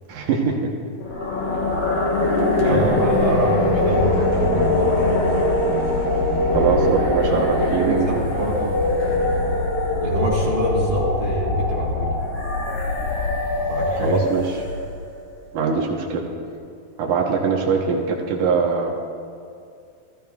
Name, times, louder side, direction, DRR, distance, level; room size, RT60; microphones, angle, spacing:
voice 1, 0.1-0.7 2.6-3.0 6.5-8.4 9.1-9.2 14.0-14.6 15.5-16.3 17.0-18.9, right 5 dB, 70° right, 0 dB, 2.4 m, -22 dB
sound 1, 1.0-15.1, left 2 dB, 65° left, 1.2 m, -22 dB
voice 2, 2.6-5.1 7.3-7.4 7.9-9.3 10.0-12.1 13.7-14.2, right 1 dB, 35° right, -5 dB, 1.8 m, -25 dB
16.0 x 15.0 x 2.3 m, 2.4 s
omnidirectional pair, 4.0 m